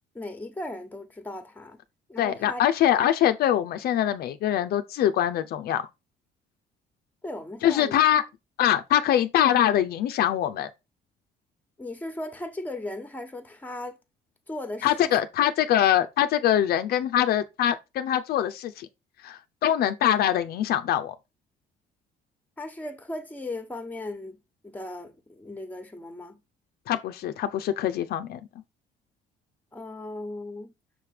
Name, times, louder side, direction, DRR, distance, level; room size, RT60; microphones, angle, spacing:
voice 1, 0.1-1.8 2.1-2.6 7.2-8.0 11.8-14.0 14.5-15.1 22.6-24.4 24.6-26.4 29.7-30.7, left 2 dB, 10° left, 1.2 m, -37 dB
voice 2, 2.2-5.8 7.6-8.2 8.6-10.7 14.8-18.9 19.2-21.1 26.9-28.4, left 11 dB, 65° left, 0.6 m, -23 dB
6.5 x 3.3 x 5.0 m
cardioid pair, 110°, 17 cm